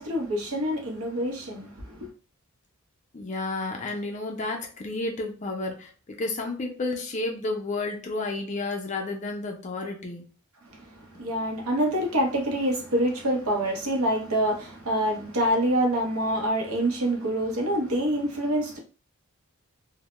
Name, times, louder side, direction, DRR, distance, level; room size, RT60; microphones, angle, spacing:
voice 1, 0.0-2.1 10.7-18.8, right 1 dB, 85° right, 0.7 m, -26 dB
voice 2, 3.1-10.2, left 2 dB, 35° left, 0.4 m, -31 dB
2.1 x 2.0 x 2.9 m
head